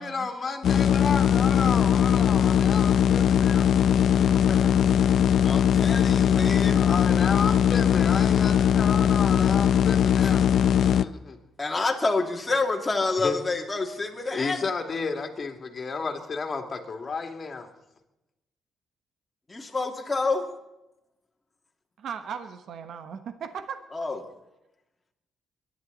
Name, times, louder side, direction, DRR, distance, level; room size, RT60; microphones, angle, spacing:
voice 1, 0.0-3.7 4.2-5.1 6.7-10.5 10.8-11.4 13.2-13.4 14.3-17.7, left 4 dB, 40° left, 4 dB, 2.8 m, -32 dB
sound 1, 0.6-11.0, left 9 dB, 65° left, 0.6 m, -20 dB
voice 2, 5.4-6.8 10.2-10.4 11.6-14.7 19.5-20.5 23.9-24.2, left 3 dB, 20° left, 0 dB, 2.6 m, -28 dB
voice 3, 22.0-23.8, right 7 dB, 65° right, 8 dB, 1.2 m, -37 dB
22.5 x 11.5 x 4.2 m, 0.92 s
cardioid pair, 90°, 0 cm